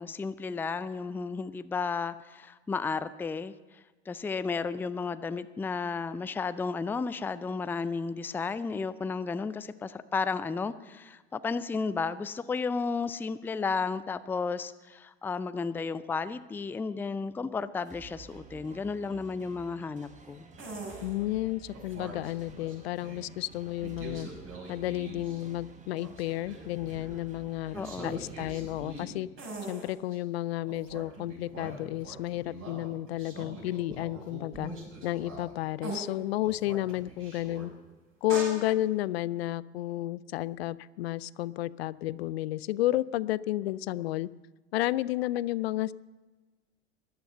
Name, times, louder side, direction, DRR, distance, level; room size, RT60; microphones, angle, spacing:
voice 1, 0.0-20.4 27.7-28.2, left 4 dB, 5° left, 14 dB, 0.4 m, -33 dB
sound 1, 17.8-29.1, right 5 dB, 20° right, 1.5 m, -52 dB
sound 2, 20.6-21.1 21.7-23.3 23.8-25.4 25.7-27.2 27.7-30.2 30.6-35.5 35.8-36.0 36.4-37.6 38.3-38.5, right 2 dB, 40° right, 5.7 m, -43 dB
voice 2, 21.0-24.3 24.7-27.8 28.0-29.3 29.7-34.7 35.0-37.7 38.2-44.3 44.7-45.9, left 15 dB, 65° left, 20 dB, 0.5 m, -32 dB
13.5 x 11.5 x 6.8 m, 1.3 s
figure-of-eight pair, 80°, 34 cm